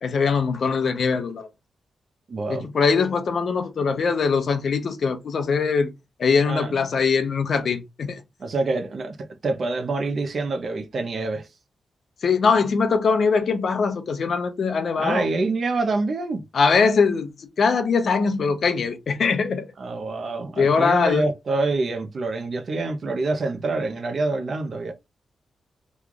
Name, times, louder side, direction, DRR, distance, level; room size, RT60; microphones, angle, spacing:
voice 1, 0.0-1.5 2.5-5.9 6.2-8.2 12.2-15.2 16.5-19.6 20.6-21.3, left 5 dB, 55° left, 0.6 m, -22 dB
voice 2, 2.3-2.7 6.5-6.9 8.4-11.5 15.0-16.4 19.8-24.9, right 3 dB, 45° right, 0.6 m, -26 dB
3.1 x 2.3 x 3.7 m
wide cardioid pair, 165°, 0 cm